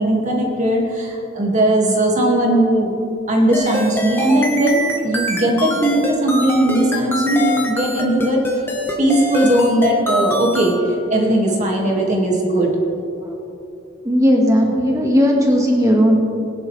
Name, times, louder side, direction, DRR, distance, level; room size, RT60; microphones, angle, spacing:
voice 1, 0.0-2.9 3.3-8.5 9.0-12.8, right 1 dB, 35° right, -1 dB, 2.2 m, -18 dB
sound 1, 3.5-10.8, equal, 10° left, 1.3 m, -24 dB
voice 2, 14.0-16.2, equal, 15° right, -1 dB, 1.8 m, -15 dB
21.0 x 10.5 x 3.4 m, 2.7 s
head